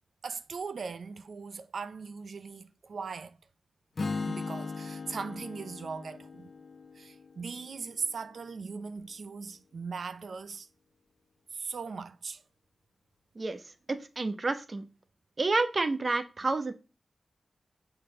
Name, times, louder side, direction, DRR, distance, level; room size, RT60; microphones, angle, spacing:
voice 1, 0.2-3.4 4.2-6.5 6.9-10.7 11.5-12.4, right 5 dB, 75° right, 0.7 m, -39 dB
Strum, 4.0-8.1, left 4 dB, 55° left, 1.2 m, -38 dB
voice 2, 13.9-14.8 15.4-16.7, right 3 dB, 45° right, 1.1 m, -29 dB
6.8 x 4.0 x 6.5 m
cardioid pair, 65°, 0 cm